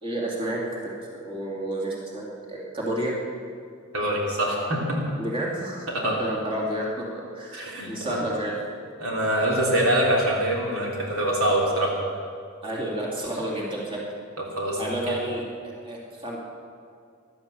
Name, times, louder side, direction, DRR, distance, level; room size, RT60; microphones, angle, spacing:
voice 1, 0.0-3.1 5.2-7.0 7.3-7.6 7.9-8.5 11.0-11.2 12.6-14.0 14.8-16.4, right 1 dB, 25° right, -4 dB, 2.6 m, -31 dB
voice 2, 3.9-5.0 5.9-6.2 7.5-8.2 9.0-11.9 14.6-15.2, right 1 dB, 90° right, -3 dB, 3.5 m, -24 dB
15.5 x 12.0 x 7.0 m, 2.3 s
head